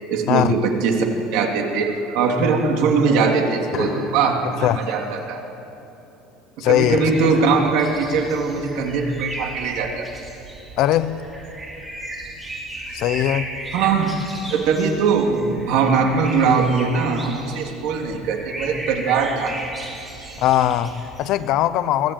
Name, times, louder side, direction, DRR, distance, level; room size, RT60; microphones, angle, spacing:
voice 1, 0.1-1.1 1.3-5.4 6.6-10.0 13.7-14.1 14.5-19.6 20.2-20.3, right 5 dB, 60° right, 3.1 m, -21 dB
sound 1, 3.5-8.6, left 2 dB, 30° left, 5.8 m, -36 dB
voice 2, 6.6-7.0 10.8-11.2 12.9-13.5 20.4-22.1, left 12 dB, 45° left, 0.8 m, -20 dB
sound 2, 6.7-21.5, right 1 dB, 10° right, 3.0 m, -35 dB
23.0 x 17.0 x 9.1 m
cardioid pair, 170°, 0 cm